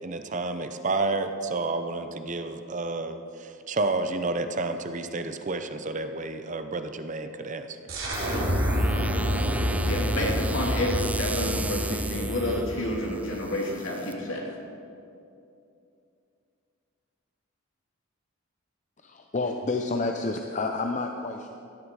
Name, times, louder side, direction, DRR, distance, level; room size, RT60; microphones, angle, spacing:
voice 1, 0.0-7.8, right 3 dB, 35° right, 8 dB, 0.7 m, -30 dB
sound 1, 7.9-13.4, equal, 70° right, 3.6 m, -28 dB
sound 2, 8.1-14.1, right 2 dB, 5° right, 0.4 m, -37 dB
voice 2, 9.9-14.4, left 1 dB, 70° left, -2 dB, 2.9 m, -29 dB
voice 3, 19.0-21.5, left 3 dB, 35° left, 4 dB, 0.6 m, -29 dB
15.5 x 11.5 x 4.8 m, 2.6 s
head